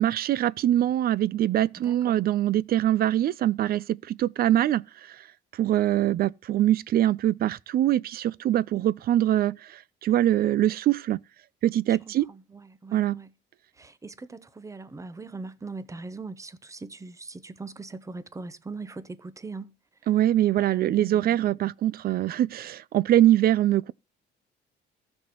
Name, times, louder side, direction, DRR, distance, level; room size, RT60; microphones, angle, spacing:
voice 1, 0.0-5.2 5.6-11.2 11.6-12.3 12.9-13.2 20.1-23.9, right 12 dB, 50° right, 0.4 m, -23 dB
voice 2, 1.8-2.3 12.3-13.3 13.8-19.8 20.6-21.7, right 3 dB, 15° right, 0.7 m, -41 dB
15.0 x 6.3 x 2.9 m
cardioid pair, 115°, 20 cm